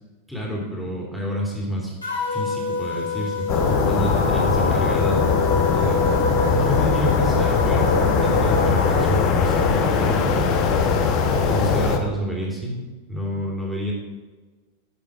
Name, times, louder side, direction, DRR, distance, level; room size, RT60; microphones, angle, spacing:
voice 1, 0.3-1.9 2.3-5.3 5.7-6.1 6.4-10.5 11.4-12.8 13.1-13.9, equal, ahead, -3 dB, 2.7 m, -29 dB
sound 1, 2.0-9.2, left 2 dB, 80° left, 3.1 m, -26 dB
sound 2, 3.5-12.0, left 5 dB, 40° left, 1.1 m, -20 dB
11.5 x 7.6 x 4.7 m, 1.3 s
figure-of-eight pair, 90°, 0 cm